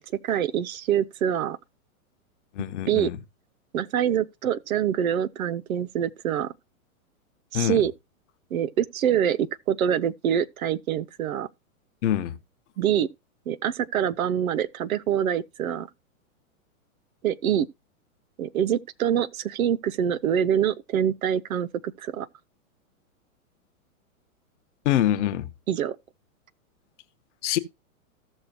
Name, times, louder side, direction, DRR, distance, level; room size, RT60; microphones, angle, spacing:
voice 1, 0.2-1.6 2.9-3.1 3.7-6.5 7.5-7.9 8.5-11.5 12.8-13.1 13.5-15.9 17.2-17.7 18.4-22.3 25.7-26.0, right 9 dB, 75° right, 0.8 m, -25 dB
voice 2, 2.6-3.2 7.5-7.8 12.0-12.3 24.8-25.4 27.4-27.6, left 12 dB, 55° left, 1.1 m, -24 dB
15.0 x 6.3 x 2.9 m
hypercardioid pair, 135°, 43 cm